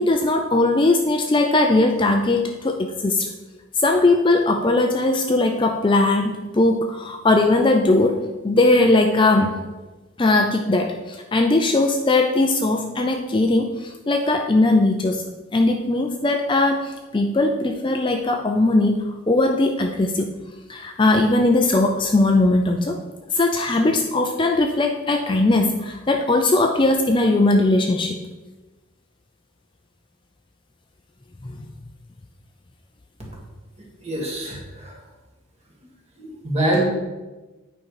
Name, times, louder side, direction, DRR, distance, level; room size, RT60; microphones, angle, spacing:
voice 1, 0.0-3.3 3.7-9.5 10.2-15.2 15.5-20.3 20.7-23.0 23.3-28.2 31.4-31.6, left 2 dB, 25° left, 4 dB, 0.4 m, -19 dB
voice 2, 34.0-34.6 36.2-36.8, right 1 dB, 30° right, -2 dB, 2.0 m, -23 dB
8.9 x 5.4 x 4.7 m, 1.2 s
head